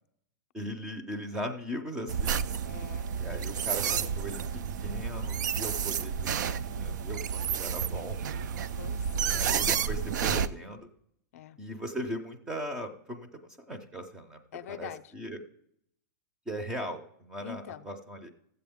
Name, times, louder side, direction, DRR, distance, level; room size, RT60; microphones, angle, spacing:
voice 1, 0.5-2.5 3.1-4.4 4.8-8.2 9.3-10.9 11.6-13.4 13.7-14.4 14.7-15.4 16.5-18.3, equal, 5° right, 6 dB, 0.5 m, -38 dB
sound 1, 2.1-10.5, right 7 dB, 75° right, 0.5 m, -31 dB
voice 2, 2.6-3.1 3.9-4.5 7.1-7.6 8.7-9.8 11.3-11.6 14.5-15.1 17.4-17.9, left 11 dB, 50° left, 13 dB, 0.5 m, -46 dB
13.0 x 7.7 x 3.5 m, 0.73 s
supercardioid pair, 180°, 10 cm